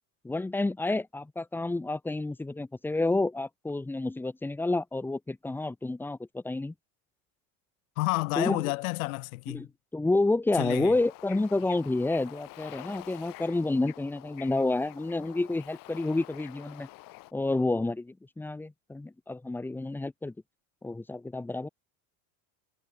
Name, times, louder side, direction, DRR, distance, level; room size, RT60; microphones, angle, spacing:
voice 1, 0.2-6.7 8.4-8.6 9.5-9.7 9.9-16.9 17.3-20.3 20.8-21.7, left 2 dB, 5° left, 0.7 m, -29 dB
voice 2, 8.0-9.7 10.5-11.0, left 22 dB, 80° left, 3.1 m, -30 dB
Bird / Ocean, 10.9-17.3, left 20 dB, 50° left, 2.6 m, -48 dB
supercardioid pair, 135°, 42 cm